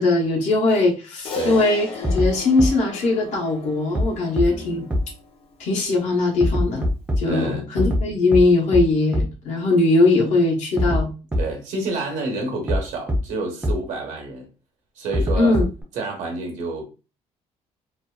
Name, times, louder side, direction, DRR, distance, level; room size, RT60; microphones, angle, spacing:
voice 1, 0.0-4.9 5.6-6.9 7.2-11.1 15.4-15.6, left 2 dB, 75° left, 0.8 m, -20 dB
Crash cymbal, 1.3-5.8, left 6 dB, 50° left, 0.5 m, -37 dB
sound 1, 2.0-2.3 2.6-2.7 3.9-4.0 4.4-4.5 4.9-5.0 6.4-7.2 7.8-8.0 8.3-8.4 8.7-8.8 9.1-9.2 10.8-11.0 11.3-11.4 12.7-12.8 13.1-13.2 13.6-13.7 15.1-15.8, equal, 10° right, 0.4 m, -21 dB
voice 2, 4.5-4.8 7.3-7.7 11.4-14.5 15.0-15.6 15.9-16.8, right 3 dB, 85° right, 0.9 m, -29 dB
2.5 x 2.2 x 2.2 m
cardioid pair, 155°, 12 cm